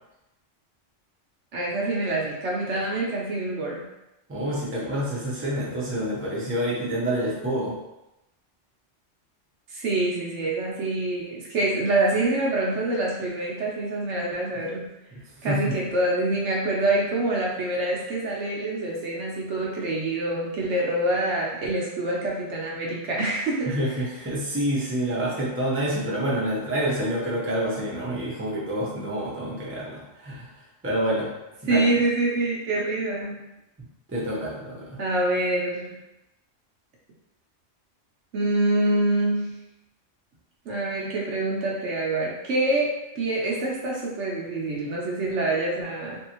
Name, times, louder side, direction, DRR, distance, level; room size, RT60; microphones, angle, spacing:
voice 1, 1.5-3.8 9.7-14.9 15.4-23.7 31.7-33.4 35.0-36.0 38.3-39.5 40.7-46.2, right 2 dB, 70° right, -3 dB, 1.0 m, -26 dB
voice 2, 4.3-7.8 15.1-15.8 23.7-30.5 30.8-31.3 31.6-31.8 34.1-35.0, equal, 15° right, -6 dB, 0.6 m, -28 dB
3.3 x 2.7 x 2.9 m, 0.92 s
omnidirectional pair, 1.3 m